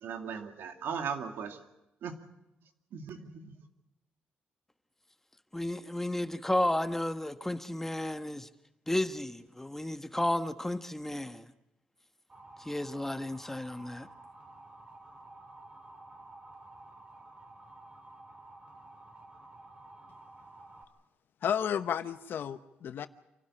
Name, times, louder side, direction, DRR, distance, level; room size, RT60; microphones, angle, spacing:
voice 1, 0.0-1.7 2.0-2.2 2.9-3.6, right 6 dB, 75° right, 2.3 m, -38 dB
voice 2, 5.5-8.5 8.9-11.4 12.6-14.1, left 1 dB, 10° left, 1.2 m, -32 dB
Motor vehicle (road) / Siren, 12.3-20.8, right 2 dB, 30° right, 3.9 m, -52 dB
voice 3, 21.4-23.1, left 8 dB, 65° left, 1.0 m, -32 dB
27.5 x 12.5 x 9.9 m
cardioid pair, 85°, 4 cm